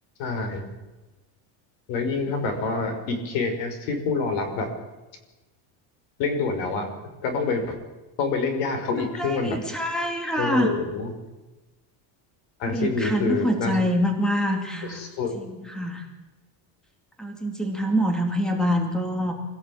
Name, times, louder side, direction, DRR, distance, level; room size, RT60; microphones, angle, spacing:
voice 1, 0.2-0.6 1.9-4.7 6.2-6.9 7.2-7.8 8.2-9.6 10.4-11.1 12.6-13.8 14.8-15.3, left 4 dB, 70° left, 7 dB, 5.8 m, -27 dB
voice 2, 9.2-10.7 12.7-15.0 15.3-16.0 17.2-19.3, equal, ahead, 4 dB, 2.5 m, -25 dB
25.5 x 17.5 x 8.8 m, 1.1 s
cardioid pair, 165°, 47 cm